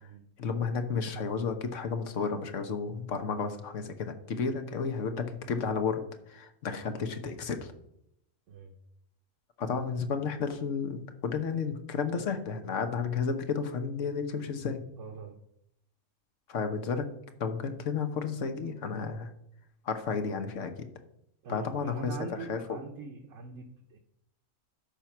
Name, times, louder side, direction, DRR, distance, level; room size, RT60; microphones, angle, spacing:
voice 1, 0.4-6.0 6.3-7.7 9.6-14.8 16.5-17.1 17.4-19.3 19.8-20.9 21.5-22.8, left 5 dB, 70° left, 8 dB, 1.3 m, -32 dB
voice 2, 15.0-15.4 21.4-24.0, right 3 dB, 70° right, 2 dB, 1.1 m, -43 dB
12.0 x 4.5 x 5.9 m, 0.76 s
omnidirectional pair, 1.3 m